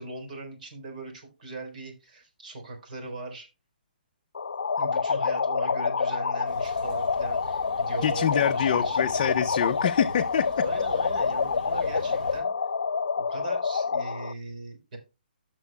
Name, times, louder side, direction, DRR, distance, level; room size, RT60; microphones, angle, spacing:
voice 1, 0.0-3.5 4.8-9.0 10.6-12.5 13.2-15.0, right 3 dB, 55° right, 4.1 m, -39 dB
sound 1, 4.4-14.3, left 5 dB, 85° left, 0.5 m, -27 dB
sound 2, 6.4-12.4, right 2 dB, 35° right, 4.9 m, -43 dB
voice 2, 8.0-10.5, left 9 dB, 40° left, 0.6 m, -26 dB
15.5 x 6.2 x 2.2 m
hypercardioid pair, 155°, 5 cm